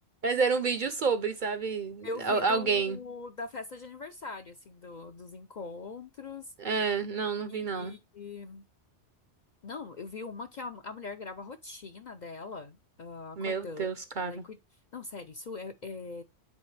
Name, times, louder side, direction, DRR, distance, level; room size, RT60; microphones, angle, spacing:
voice 1, 0.2-3.0 6.6-8.0 13.4-14.4, right 5 dB, 50° right, 0.7 m, -29 dB
voice 2, 2.0-6.5 7.5-8.6 9.6-13.9 14.2-14.6 14.9-16.2, left 3 dB, 50° left, 0.6 m, -41 dB
8.5 x 3.8 x 3.2 m
omnidirectional pair, 1.2 m